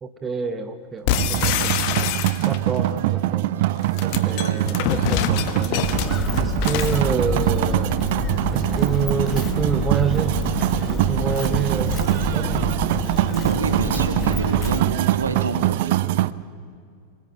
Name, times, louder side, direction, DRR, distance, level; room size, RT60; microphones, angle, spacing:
voice 1, 0.0-1.8 2.4-3.5 4.0-5.9 6.4-8.0 8.5-12.7, right 6 dB, 20° right, 9 dB, 1.4 m, -28 dB
sound 1, 1.1-2.8 3.8-7.1, left 10 dB, 45° left, 1.6 m, -25 dB
sound 2, 1.2-16.3, right 15 dB, 50° right, 0.7 m, -23 dB
voice 2, 4.3-4.6 13.3-15.9, right 3 dB, 75° right, 7 dB, 2.7 m, -29 dB
Walk footsteps, 5.8-14.8, left 3 dB, 20° left, 2.1 m, -28 dB
26.5 x 21.5 x 8.9 m, 2.2 s
figure-of-eight pair, 90°, 0 cm